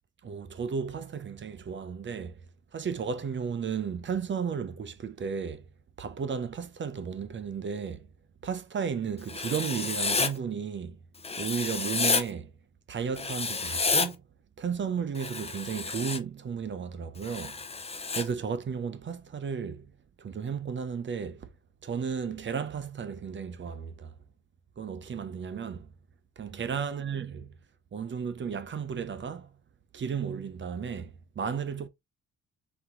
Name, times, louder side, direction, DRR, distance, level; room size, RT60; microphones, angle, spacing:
voice 1, 0.2-2.5 2.7-5.7 6.0-8.1 8.4-11.0 11.4-12.5 12.9-14.2 14.6-17.6 18.1-19.9 20.2-21.5 21.8-24.2 24.8-25.9 26.4-27.5 27.9-29.5 29.9-31.9, right 6 dB, 40° right, 0.7 m, -34 dB
Writing, 9.3-10.3 11.2-12.2 13.2-14.1 15.1-16.2 17.2-18.2, left 4 dB, 20° left, 0.9 m, -30 dB
4.1 x 2.8 x 3.8 m
cardioid pair, 90°, 30 cm